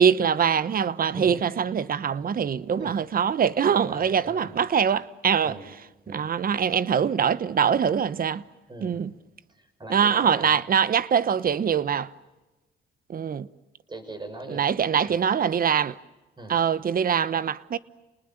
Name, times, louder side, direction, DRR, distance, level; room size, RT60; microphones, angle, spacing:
voice 1, 0.0-5.6 6.1-8.4 8.8-9.1 9.9-12.1 13.1-13.5 14.5-16.0 16.5-17.8, right 7 dB, 45° right, 1.0 m, -23 dB
voice 2, 1.1-1.4 2.8-2.9 3.7-4.5 5.4-5.7 6.1-6.3 8.7-9.0 9.5-10.6 13.9-14.6 15.0-15.2 16.4-16.5, right 1 dB, 20° right, 6.1 m, -40 dB
30.0 x 20.0 x 9.2 m
cardioid pair, 90°, 20 cm